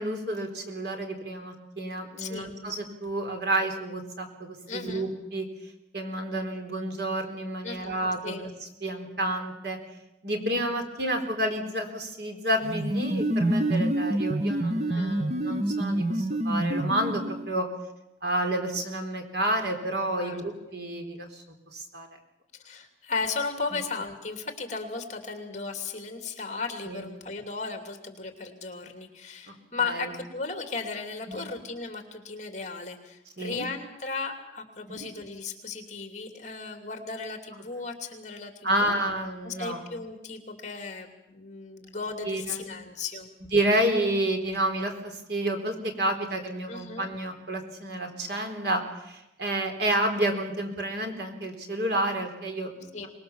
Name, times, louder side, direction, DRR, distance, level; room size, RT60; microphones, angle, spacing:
voice 1, 0.0-5.5 5.9-8.5 8.8-9.8 10.2-17.7 18.2-21.4 21.7-22.1 23.7-23.8 26.9-27.0 29.5-29.6 29.8-30.1 31.3-31.5 33.4-33.7 34.9-35.0 38.6-39.8 42.2-42.8 43.5-52.9, right 1 dB, 65° right, 4 dB, 4.0 m, -30 dB
voice 2, 2.2-2.5 4.7-5.1 7.6-8.4 14.9-15.3 20.2-20.4 22.6-38.9 39.4-43.3 46.7-47.1 52.9-53.1, left 4 dB, 40° left, 5 dB, 2.9 m, -36 dB
sound 1, 12.6-17.5, right 1 dB, 35° right, 1.0 m, -27 dB
24.5 x 21.0 x 7.2 m, 0.88 s
head